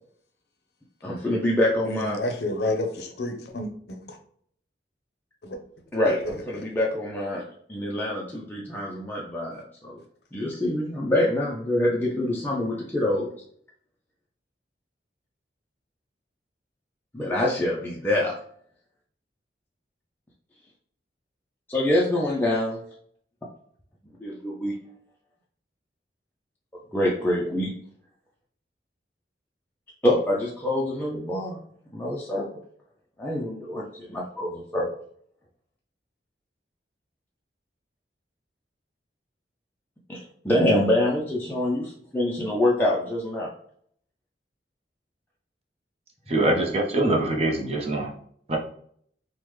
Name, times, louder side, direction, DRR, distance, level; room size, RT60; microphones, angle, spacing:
voice 1, 1.0-2.2 5.9-10.0 10.3-13.3 17.1-18.4 21.7-22.8 24.2-24.7 26.9-27.7 30.0-31.6 31.9-32.5 33.2-34.9 40.1-43.5, left 1 dB, 10° left, -4 dB, 0.4 m, -25 dB
voice 2, 1.8-4.2 5.4-5.6 6.1-6.6, left 1 dB, 65° left, 5 dB, 0.6 m, -30 dB
voice 3, 46.3-48.1 48.5-48.6, right 2 dB, 35° right, 0 dB, 0.6 m, -23 dB
3.2 x 2.1 x 3.0 m, 0.62 s
head